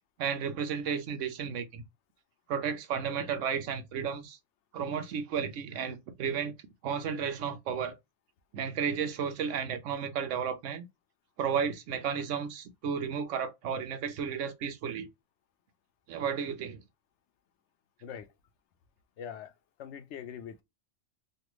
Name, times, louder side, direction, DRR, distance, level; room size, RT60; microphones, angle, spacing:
voice 1, 0.2-1.8 2.5-4.4 4.7-6.5 6.8-8.0 8.5-10.8 11.4-15.1 16.1-16.8, right 7 dB, 85° right, 1.0 m, -33 dB
voice 2, 18.0-18.3 19.2-19.5 19.8-20.6, left 8 dB, 75° left, 0.9 m, -42 dB
3.3 x 2.3 x 3.0 m
omnidirectional pair, 1.2 m